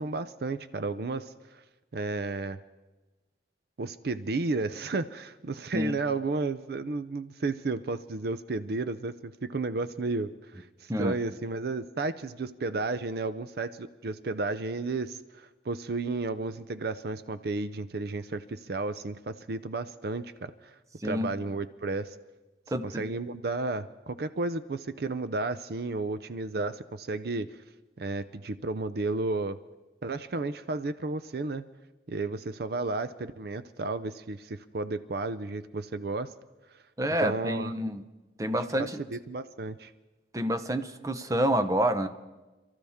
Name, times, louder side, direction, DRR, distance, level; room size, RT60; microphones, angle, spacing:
voice 1, 0.0-1.6 1.9-2.6 3.8-20.8 21.0-22.2 22.8-27.6 28.0-29.6 30.0-31.7 32.1-36.3 37.2-37.7 38.8-39.9, right 3 dB, 60° right, 13 dB, 0.5 m, -33 dB
voice 2, 21.0-21.3 22.7-23.0 37.0-38.0 38.4-39.0 40.3-42.1, equal, 20° right, 9 dB, 0.7 m, -28 dB
27.5 x 14.0 x 3.6 m, 1.1 s
head